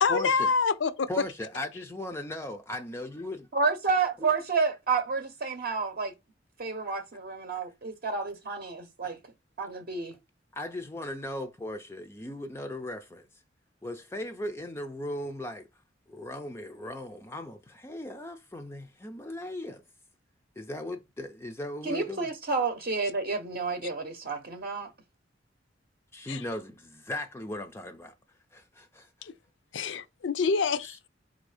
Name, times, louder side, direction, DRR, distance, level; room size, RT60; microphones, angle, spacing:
voice 1, 0.0-1.3 26.3-26.4 29.2-29.3 29.7-31.1, left 5 dB, 70° left, 0.5 m, -27 dB
voice 2, 1.1-3.5 10.5-13.3 13.8-15.7 16.1-19.8 20.6-22.3 26.1-28.1 28.5-29.1, left 1 dB, 15° left, 0.4 m, -37 dB
voice 3, 3.5-6.1 6.6-9.2 9.6-10.2 21.8-24.9, right 4 dB, 50° right, 0.7 m, -30 dB
4.2 x 2.6 x 4.8 m
head